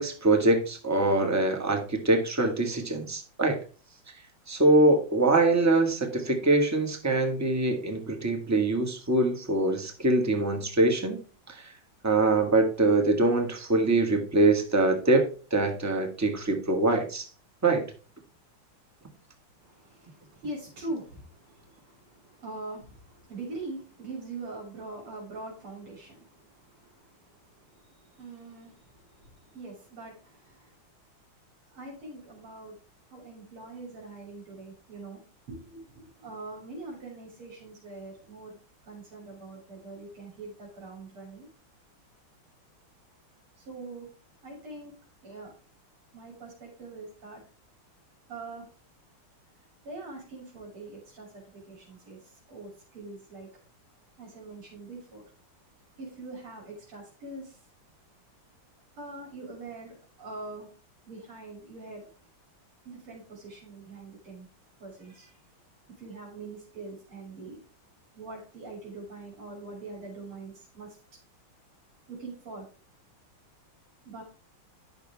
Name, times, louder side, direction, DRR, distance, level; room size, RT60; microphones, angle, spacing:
voice 1, 0.0-3.6 4.5-11.2 11.5-11.7 12.0-17.3 17.6-17.8, right 2 dB, 10° right, 3 dB, 1.4 m, -24 dB
voice 2, 19.6-30.8 31.7-32.7 33.1-35.2 35.5-38.6 38.9-41.5 43.6-44.1 44.4-44.9 45.2-45.5 46.1-47.4 48.3-48.7 49.8-53.5 54.2-55.3 56.0-57.6 59.0-60.7 61.1-62.1 62.8-64.5 64.8-65.4 66.0-67.6 68.1-71.0 72.1-72.7 74.0-74.2, right 2 dB, 90° right, -3 dB, 3.9 m, -43 dB
11.0 x 6.5 x 3.4 m, 0.37 s
omnidirectional pair, 2.3 m